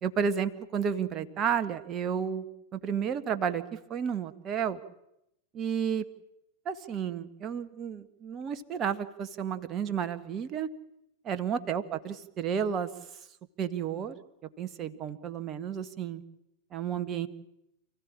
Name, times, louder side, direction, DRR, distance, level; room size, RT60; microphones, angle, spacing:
voice 1, 0.0-2.5 2.7-4.8 5.5-6.0 6.6-10.7 11.2-12.9 13.6-14.1 14.6-16.2 16.7-17.3, right 7 dB, 30° right, 10 dB, 1.6 m, -32 dB
28.5 x 15.5 x 8.7 m, 0.83 s
figure-of-eight pair, 90°, 0 cm